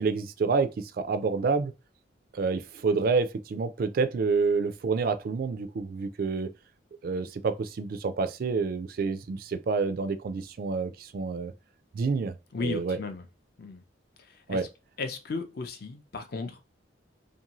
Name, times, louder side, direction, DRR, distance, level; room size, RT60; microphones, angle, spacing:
voice 1, 0.0-1.7 2.3-6.5 7.0-11.5 11.9-12.3 12.6-13.0 14.5-14.7, right 4 dB, 50° right, 0.3 m, -28 dB
voice 2, 12.5-13.2 13.6-13.8 14.2-14.6 15.0-16.6, left 4 dB, 55° left, 0.5 m, -35 dB
2.6 x 2.6 x 2.9 m
head